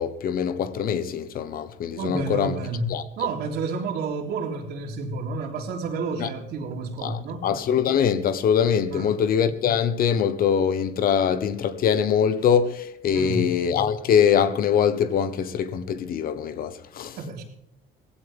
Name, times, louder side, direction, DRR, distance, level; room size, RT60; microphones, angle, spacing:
voice 1, 0.0-2.6 2.9-3.3 6.2-6.3 7.0-17.2, left 8 dB, 60° left, 1.2 m, -23 dB
voice 2, 2.0-7.4 8.9-9.2 13.1-13.5 17.2-17.4, right 4 dB, 75° right, 3.5 m, -30 dB
18.5 x 15.5 x 3.6 m
cardioid pair, 110°, 17 cm